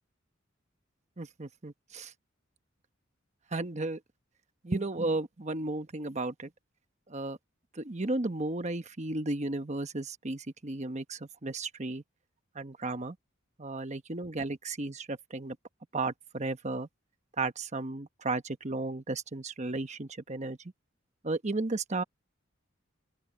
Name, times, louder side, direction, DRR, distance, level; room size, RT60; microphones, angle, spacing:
voice 1, 1.2-2.1 3.5-4.0 4.6-6.5 7.1-7.4 7.7-12.0 12.5-13.2 13.6-15.6 15.9-16.9 17.4-20.6 21.2-22.0, right 2 dB, 35° right, 1.1 m, -34 dB
open air
head